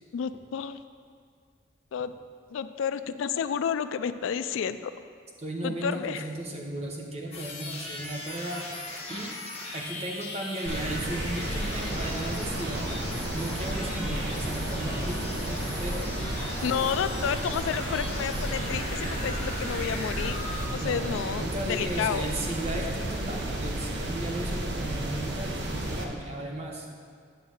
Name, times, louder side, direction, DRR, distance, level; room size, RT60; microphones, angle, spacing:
voice 1, 0.1-0.8 1.9-2.1 2.5-4.9 5.6-6.3 16.6-22.3, left 7 dB, 80° left, 11 dB, 0.3 m, -31 dB
voice 2, 5.4-8.6 9.1-9.3 9.7-13.0 13.3-16.0 20.8-26.9, right 1 dB, 30° right, 0 dB, 0.9 m, -35 dB
sound 1, 7.3-20.7, left 2 dB, 30° left, 1.3 m, -38 dB
sound 2, 10.7-26.0, right 1 dB, 60° right, 0.8 m, -32 dB
9.2 x 3.9 x 6.4 m, 2.1 s
head